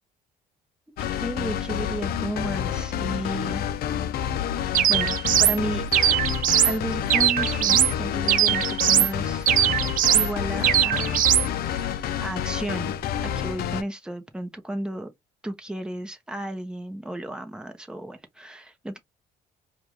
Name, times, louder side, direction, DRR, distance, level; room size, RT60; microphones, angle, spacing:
sound 1, 1.0-13.8, left 9 dB, 65° left, 0.6 m, -29 dB
voice 1, 1.2-3.7 4.9-5.8 6.7-9.5 10.1-11.2 11.7-12.9 13.4-15.1 15.4-19.0, right 1 dB, 5° right, 1.0 m, -33 dB
sound 2, 4.7-5.6 5.9-6.8 7.1-7.9 8.3-9.1 9.5-10.3 10.6-11.5, right 11 dB, 55° right, 0.5 m, -20 dB
4.7 x 2.5 x 3.0 m
cardioid pair, 110°, 17 cm